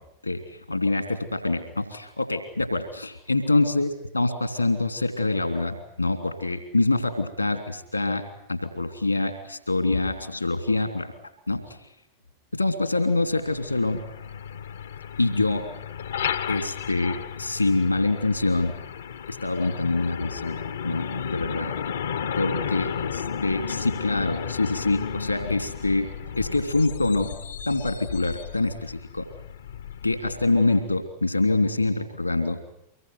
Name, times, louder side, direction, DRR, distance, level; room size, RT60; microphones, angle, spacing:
voice 1, 0.2-3.9 4.1-11.1 11.5-11.6 12.5-14.0 15.2-15.6 16.5-18.7 19.3-21.7 22.3-26.1 26.4-27.3 27.7-29.2 30.0-32.6, left 2 dB, 85° left, 8 dB, 3.1 m, -25 dB
Truck, 13.3-31.0, left 7 dB, 65° left, 1.0 m, -34 dB
25.0 x 22.0 x 9.4 m, 0.80 s
figure-of-eight pair, 90°, 0 cm